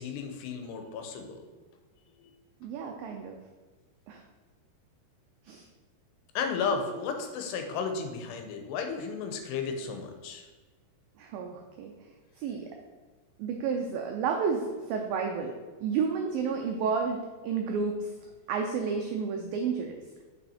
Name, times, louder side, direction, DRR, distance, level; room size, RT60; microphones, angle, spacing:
voice 1, 0.0-1.4 2.2-2.3 6.4-10.5, left 5 dB, 85° left, 5 dB, 2.8 m, -33 dB
voice 2, 2.6-3.4 4.1-4.2 5.5-5.7 11.2-11.9 12.4-12.7 13.4-20.0, right 5 dB, 90° right, 3 dB, 2.0 m, -31 dB
6.2 x 5.5 x 4.2 m, 1.3 s
omnidirectional pair, 4.8 m